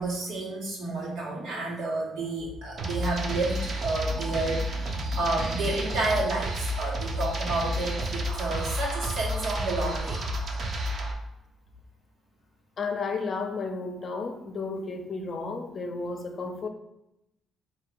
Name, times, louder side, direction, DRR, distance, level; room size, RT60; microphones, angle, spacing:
voice 1, 0.0-10.2, right 2 dB, 90° right, -4 dB, 1.4 m, -30 dB
sound 1, 2.8-11.1, equal, 55° right, 0.8 m, -31 dB
voice 2, 12.8-16.7, left 4 dB, 50° left, 5 dB, 0.6 m, -32 dB
4.0 x 2.7 x 4.6 m, 0.87 s
cardioid pair, 90°, 0 cm